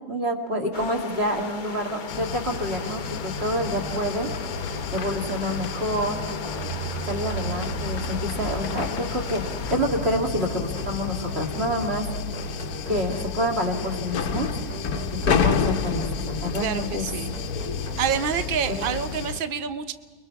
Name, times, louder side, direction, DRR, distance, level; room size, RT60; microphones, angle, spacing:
voice 1, 0.1-4.3 4.9-6.2 7.1-9.4 9.7-12.0 12.9-14.5 15.3-17.0 18.8-18.9, equal, 35° right, 2 dB, 2.4 m, -27 dB
sound 1, 0.7-9.8, left 5 dB, 45° left, 0.6 m, -38 dB
sound 2, 2.1-19.4, left 6 dB, 65° left, 1.2 m, -31 dB
sound 3, 3.4-19.0, right 2 dB, 90° right, 3.5 m, -37 dB
voice 2, 16.6-17.3 18.0-19.9, right 8 dB, 75° right, 11 dB, 0.5 m, -27 dB
30.0 x 21.5 x 4.7 m, 1.5 s
omnidirectional pair, 1.9 m